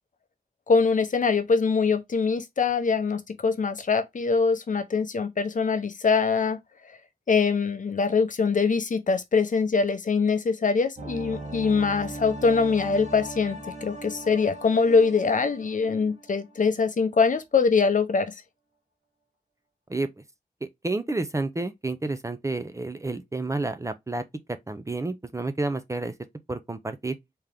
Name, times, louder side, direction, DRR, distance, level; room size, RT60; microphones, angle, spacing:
voice 1, 0.7-6.6 7.3-18.3, left 5 dB, 55° left, 0.7 m, -23 dB
sound 1, 11.0-16.6 16.9-17.0, right 1 dB, 45° right, 1.1 m, -39 dB
voice 2, 19.9-20.2 20.6-24.2 24.7-26.1 26.5-27.2, right 2 dB, 20° right, 0.4 m, -30 dB
3.7 x 2.9 x 3.3 m
wide cardioid pair, 135°, 16 cm